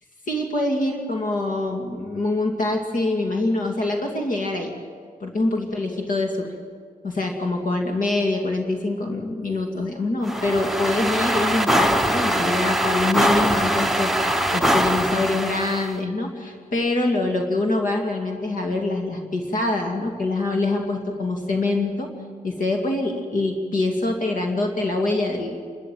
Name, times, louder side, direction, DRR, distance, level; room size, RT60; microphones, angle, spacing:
voice 1, 0.3-4.7 5.2-6.5 7.0-22.1 22.4-25.6, left 2 dB, 60° left, 2 dB, 2.4 m, -24 dB
sound 1, 10.2-15.9, right 1 dB, ahead, 0.8 m, -22 dB
28.0 x 13.5 x 9.3 m, 2.1 s
wide cardioid pair, 155°, 15 cm